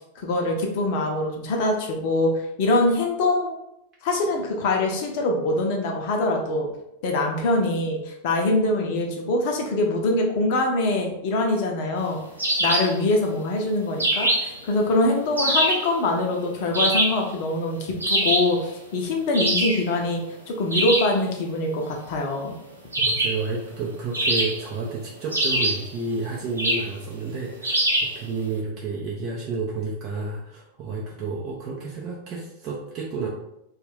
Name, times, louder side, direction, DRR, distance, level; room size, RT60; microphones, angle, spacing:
voice 1, 0.2-3.5 4.0-6.7 7.0-12.2 12.6-20.2 20.5-22.5, left 2 dB, 50° left, 1 dB, 0.6 m, -24 dB
sound 1, 12.4-13.0 14.0-14.6 15.4-15.9 16.7-17.3 18.0-18.6 19.3-19.8 20.7-21.2 22.9-23.5 24.1-24.8 25.3-25.9 26.6-26.9 27.6-28.2, right 1 dB, 80° right, 0.7 m, -23 dB
voice 2, 23.0-33.3, right 4 dB, 35° right, -3 dB, 0.5 m, -31 dB
2.5 x 2.4 x 3.4 m, 0.83 s
figure-of-eight pair, 90°, 0 cm